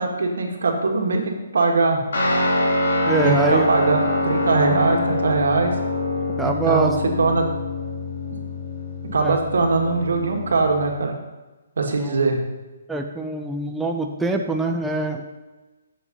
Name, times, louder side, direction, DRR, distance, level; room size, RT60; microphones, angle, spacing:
voice 1, 0.0-2.0 3.2-5.8 6.4-6.9 7.2-7.4 9.1-11.1 11.8-12.4, right 3 dB, 80° right, 2 dB, 2.0 m, -21 dB
Guitar, 2.1-10.9, left 2 dB, 90° left, 3.5 m, -25 dB
voice 2, 3.1-3.7 6.4-6.9 9.2-9.4 12.0-12.3 12.9-15.2, right 3 dB, 5° right, 2 dB, 0.4 m, -24 dB
8.2 x 7.3 x 5.5 m, 1.2 s
hypercardioid pair, 175°, 0 cm